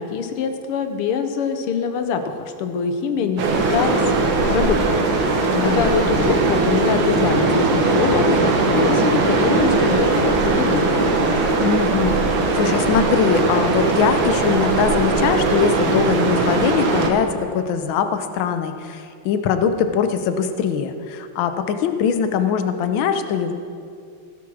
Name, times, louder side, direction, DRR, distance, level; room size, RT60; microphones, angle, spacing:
voice 1, 0.0-4.2 4.5-10.9, left 6 dB, 85° left, 7 dB, 1.8 m, -24 dB
sound 1, 3.4-17.1, right 3 dB, 70° right, 2.0 m, -19 dB
voice 2, 5.5-6.0 11.6-12.2 12.5-23.5, left 7 dB, 70° left, 8 dB, 1.4 m, -22 dB
15.5 x 6.1 x 6.2 m, 2.4 s
omnidirectional pair, 2.4 m